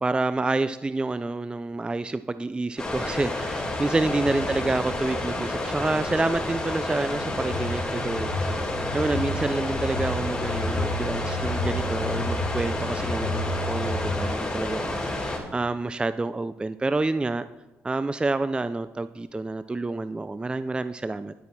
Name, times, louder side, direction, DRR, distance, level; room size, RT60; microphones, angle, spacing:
voice 1, 0.0-8.7 8.9-17.5 17.8-21.3, right 2 dB, 15° right, 13 dB, 0.3 m, -28 dB
sound 1, 2.8-15.4, left 2 dB, 15° left, 3.7 m, -30 dB
sound 2, 4.2-14.2, left 1 dB, 85° left, 1.1 m, -33 dB
10.5 x 8.6 x 4.2 m, 1.1 s
supercardioid pair, 65°, 5 cm